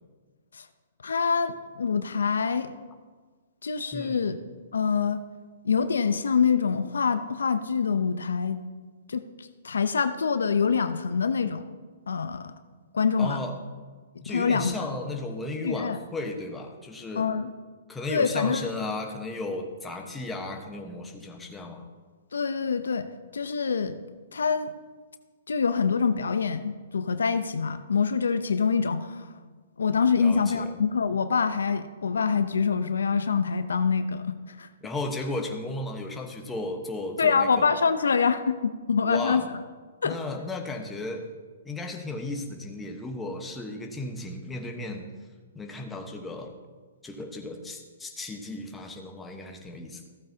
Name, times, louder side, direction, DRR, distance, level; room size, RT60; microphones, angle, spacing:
voice 1, 1.0-2.7 3.6-4.4 4.7-5.2 5.6-8.6 9.1-11.6 12.1-12.5 12.9-13.4 14.3-14.7 15.6-16.0 17.2-17.5 18.1-18.7 22.3-23.1 23.3-24.0 24.3-24.7 25.5-29.3 29.8-34.7 37.2-39.4 40.0-40.2, left 5 dB, 85° left, 11 dB, 0.6 m, -25 dB
voice 2, 3.9-4.3 13.2-13.6 14.2-17.3 17.9-21.9 30.1-30.7 34.8-37.8 39.0-39.5 40.0-41.3 41.6-45.0 45.5-46.5 47.0-50.0, left 2 dB, 10° left, 2 dB, 1.1 m, -35 dB
15.0 x 8.6 x 2.8 m, 1.4 s
hypercardioid pair, 145°, 0 cm